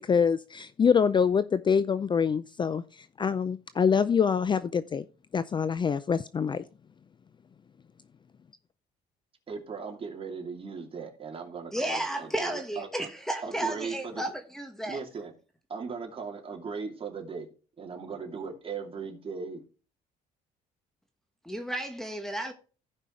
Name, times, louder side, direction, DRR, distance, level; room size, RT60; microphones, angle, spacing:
voice 1, 0.0-5.0 5.3-6.6, left 6 dB, 30° left, 0.5 m, -25 dB
voice 2, 9.5-13.1 13.4-14.3 14.8-15.3 15.7-17.5 17.8-19.6, right 5 dB, 35° right, 2.8 m, -38 dB
voice 3, 11.7-15.0 21.4-22.5, right 1 dB, ahead, 1.2 m, -33 dB
15.5 x 5.4 x 3.2 m
cardioid pair, 110°, 17 cm